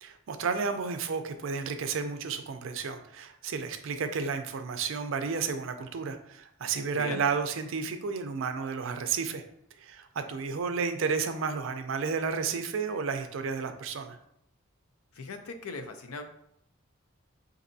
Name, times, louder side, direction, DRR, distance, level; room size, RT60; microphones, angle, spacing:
voice 1, 0.0-9.4 9.8-14.2, right 5 dB, 65° right, 8 dB, 0.4 m, -32 dB
voice 2, 6.9-7.2 15.1-16.2, left 3 dB, 90° left, 7 dB, 0.5 m, -39 dB
5.1 x 2.6 x 2.6 m, 0.73 s
head